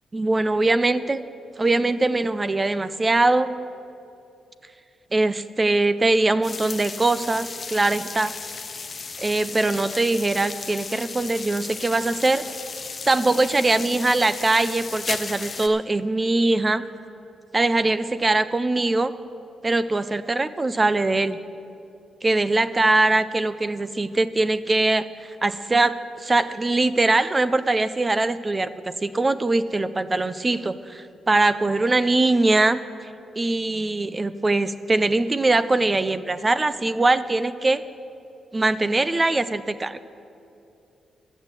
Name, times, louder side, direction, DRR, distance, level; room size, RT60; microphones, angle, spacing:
voice 1, 0.1-1.2 1.6-3.6 5.1-8.3 9.2-12.4 13.1-16.8 17.5-19.1 19.6-21.4 22.2-32.8 33.4-37.8 38.5-40.0, right 2 dB, 15° right, 13 dB, 0.3 m, -22 dB
sound 1, 6.4-15.7, left 4 dB, 30° left, 0.6 m, -35 dB
12.0 x 7.9 x 8.1 m, 2.7 s
wide cardioid pair, 180°, 0 cm